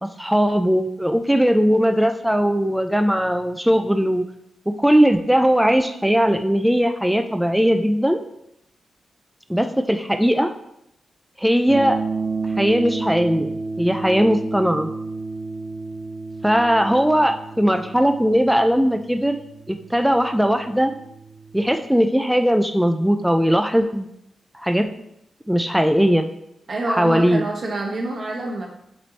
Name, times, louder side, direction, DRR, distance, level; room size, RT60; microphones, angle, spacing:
voice 1, 0.0-4.2 4.8-8.2 9.5-10.5 11.4-12.0 12.6-13.5 13.8-14.9 16.4-19.4 19.7-20.9 21.5-24.1 24.5-24.9 25.5-26.3 26.9-27.4, equal, 5° right, 7 dB, 0.4 m, -19 dB
sound 1, 11.7-21.8, right 4 dB, 80° right, 0.7 m, -31 dB
voice 2, 26.7-28.7, right 2 dB, 55° right, 0 dB, 1.4 m, -27 dB
7.5 x 3.2 x 4.0 m, 0.78 s
cardioid pair, 90°, 0 cm